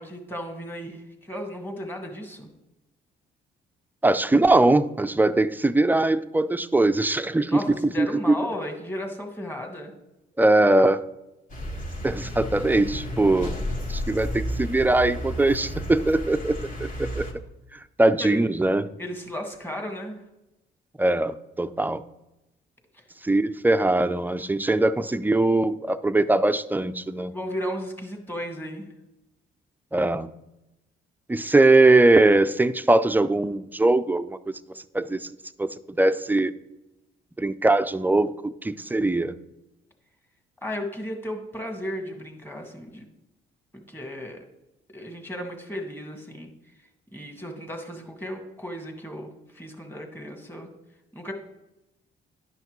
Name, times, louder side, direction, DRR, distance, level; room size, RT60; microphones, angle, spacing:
voice 1, 0.0-2.5 7.5-9.9 18.2-18.4 19.0-20.2 22.9-23.0 27.3-28.9 40.6-43.0 43.7-44.4 44.9-46.5 47.1-50.7 51.1-51.3, equal, 10° left, 2 dB, 1.6 m, -35 dB
voice 2, 4.0-7.6 8.0-8.3 10.4-11.0 12.0-13.6 13.9-17.3 18.0-18.9 21.0-22.0 23.2-27.3 29.9-30.3 31.3-34.4 34.9-35.3 35.6-36.5 37.4-39.3, right 2 dB, 10° right, 12 dB, 0.3 m, -21 dB
sound 1, 11.5-17.3, equal, 40° left, 1.5 m, -32 dB
11.0 x 5.7 x 3.0 m, 0.93 s
cardioid pair, 90°, 20 cm